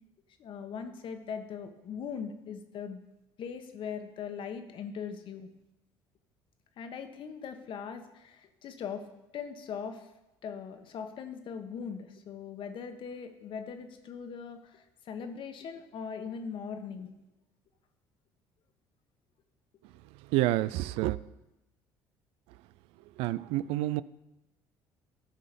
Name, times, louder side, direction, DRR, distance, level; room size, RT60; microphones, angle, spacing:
voice 1, 0.4-3.0 3.4-5.5 6.8-9.1 9.3-10.1 10.4-17.1, left 6 dB, 60° left, 7 dB, 1.3 m, -40 dB
voice 2, 20.3-21.2 23.2-24.0, right 16 dB, 80° right, 18 dB, 0.4 m, -28 dB
13.5 x 5.6 x 5.1 m, 0.96 s
supercardioid pair, 80°, 10 cm